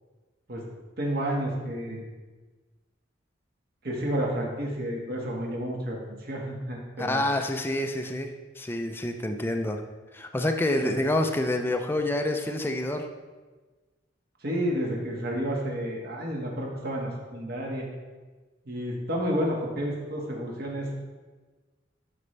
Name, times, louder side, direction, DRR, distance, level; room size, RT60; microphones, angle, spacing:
voice 1, 1.0-2.0 3.8-7.2 10.8-11.0 14.4-17.9 18.6-20.9, equal, 60° right, -1 dB, 1.6 m, -30 dB
voice 2, 7.0-8.3 8.6-9.8 10.1-13.1, left 1 dB, 10° left, 4 dB, 0.5 m, -27 dB
12.0 x 5.2 x 3.3 m, 1.3 s
head